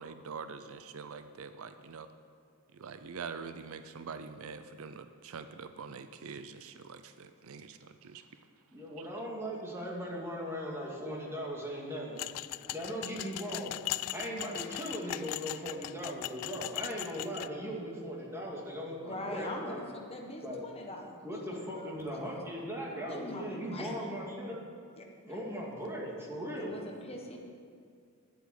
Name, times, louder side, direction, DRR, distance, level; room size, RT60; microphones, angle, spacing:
voice 1, 0.0-2.1 2.8-8.2, right 5 dB, 65° right, 10 dB, 0.5 m, -44 dB
voice 2, 8.7-12.2 12.7-13.8 14.1-19.8 20.4-20.6 21.2-24.6 25.2-26.7, equal, 10° right, -3 dB, 2.2 m, -38 dB
sound 1, 12.2-17.5, left 15 dB, 85° left, 0.3 m, -39 dB
voice 3, 19.0-22.2 23.0-24.1 25.0-25.4 26.6-27.4, left 2 dB, 25° left, 1 dB, 1.2 m, -43 dB
11.0 x 8.2 x 7.8 m, 2.2 s
head